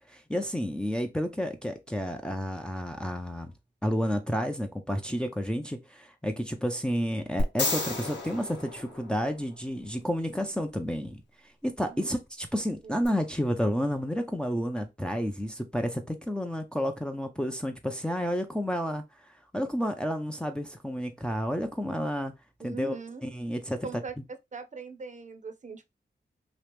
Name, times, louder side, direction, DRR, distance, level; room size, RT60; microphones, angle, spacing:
voice 1, 0.1-3.5 3.8-11.2 11.6-19.0 19.5-22.3 22.6-22.9 23.2-24.0, equal, 5° left, 0.6 m, -30 dB
sound 1, 7.4-9.6 13.0-13.1, left 2 dB, 85° left, 1.1 m, -32 dB
voice 2, 22.6-23.2 23.8-24.1 24.5-25.8, right 4 dB, 40° right, 0.7 m, -40 dB
3.0 x 2.4 x 3.4 m
cardioid pair, 55°, 18 cm